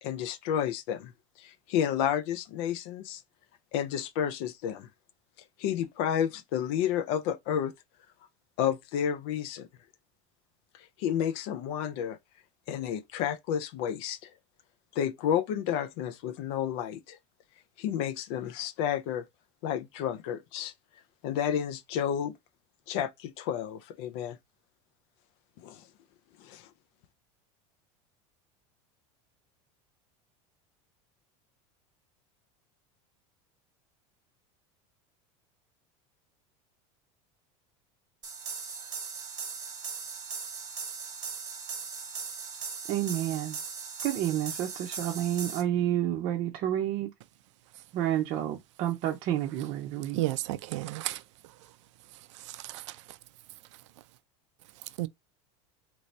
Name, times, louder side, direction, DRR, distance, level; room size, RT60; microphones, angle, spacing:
voice 1, 0.0-1.1 1.4-3.2 3.7-4.9 5.6-7.7 8.6-9.7 11.0-12.2 12.7-14.3 15.0-17.2 17.8-19.2 19.6-20.7 21.2-22.3 22.9-24.4 25.6-25.8 26.4-26.7, left 9 dB, 60° left, 0.5 m, -31 dB
sound 1, 38.2-45.6, right 5 dB, 25° right, 0.9 m, -39 dB
voice 2, 42.9-43.6 44.0-47.1 47.9-50.2, right 12 dB, 45° right, 0.6 m, -30 dB
voice 3, 50.1-51.2 52.3-53.2 55.0-55.1, right 17 dB, 90° right, 0.4 m, -33 dB
3.0 x 2.7 x 3.1 m
supercardioid pair, 145°, 15 cm